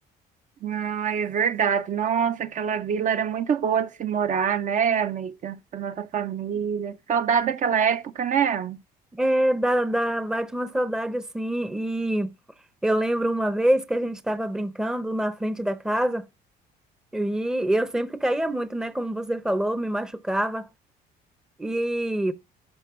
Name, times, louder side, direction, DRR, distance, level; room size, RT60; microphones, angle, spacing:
voice 1, 0.6-8.8, right 7 dB, 50° right, 0.6 m, -25 dB
voice 2, 9.1-12.3 12.8-16.3 17.1-20.7 21.6-22.3, right 1 dB, 5° right, 0.6 m, -25 dB
11.5 x 5.1 x 3.6 m
cardioid pair, 110°, 17 cm